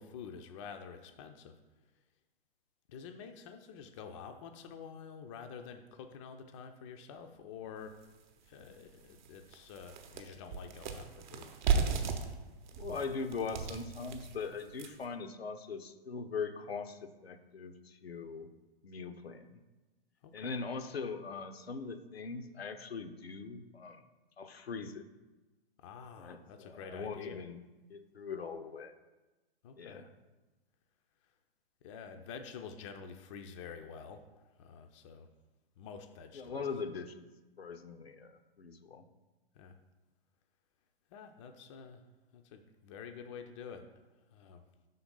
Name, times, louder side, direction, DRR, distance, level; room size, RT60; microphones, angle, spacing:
voice 1, 0.0-1.5 2.9-8.0 8.4-11.6 20.2-20.6 25.8-27.4 29.6-30.0 31.8-35.3 35.8-36.7 39.6-39.8 41.1-42.0 42.3-43.9 44.3-44.7, left 6 dB, 30° left, 6 dB, 0.4 m, -48 dB
sound 1, 8.0-8.1 8.6-8.7 9.1-15.1, right 6 dB, 50° right, 0.8 m, -35 dB
voice 2, 12.8-18.5 18.8-19.6 20.3-24.0 24.4-25.0 26.2-27.6 27.9-28.9 29.8-30.1 36.3-37.3 37.6-39.1, left 5 dB, 80° left, 8 dB, 0.7 m, -41 dB
5.6 x 3.8 x 5.4 m, 1.1 s
figure-of-eight pair, 110°, 31 cm